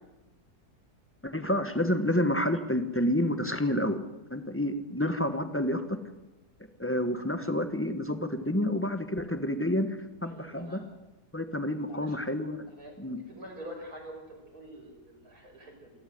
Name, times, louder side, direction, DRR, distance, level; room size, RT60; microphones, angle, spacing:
voice 1, 1.2-4.0 4.3-6.0 6.8-9.9 10.2-10.8 11.3-12.6 13.0-13.2, left 1 dB, 10° left, 9 dB, 1.2 m, -29 dB
voice 2, 10.2-10.8 11.9-12.2 12.7-15.9, right 1 dB, 60° right, 1 dB, 6.4 m, -46 dB
28.0 x 12.5 x 7.9 m, 1.0 s
omnidirectional pair, 1.8 m